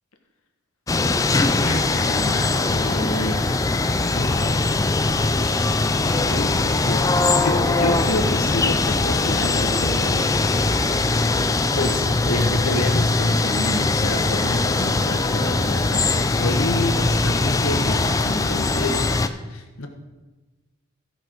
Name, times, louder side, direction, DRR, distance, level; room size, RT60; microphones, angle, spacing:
sound 1, 0.9-19.3, left 3 dB, 15° left, 0.3 m, -21 dB
voice 1, 1.6-3.6 4.1-4.5 6.3-10.3 11.7-19.0 19.5-19.9, left 1 dB, 85° left, 4 dB, 1.4 m, -28 dB
15.0 x 5.8 x 4.6 m, 1.2 s
head